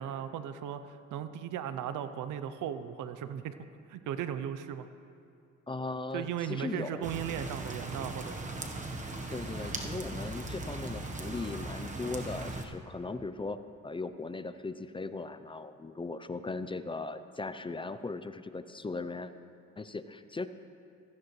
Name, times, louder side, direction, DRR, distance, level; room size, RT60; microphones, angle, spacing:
voice 1, 0.0-3.6 3.9-4.9 6.1-8.7, right 9 dB, 85° right, 11 dB, 0.7 m, -37 dB
voice 2, 5.7-7.1 9.3-19.3 19.8-20.5, left 3 dB, 15° left, 11 dB, 0.5 m, -38 dB
sound 1, 7.0-12.7, right 2 dB, 25° right, 1.2 m, -38 dB
16.5 x 14.5 x 3.2 m, 2.5 s
cardioid pair, 90°, 30 cm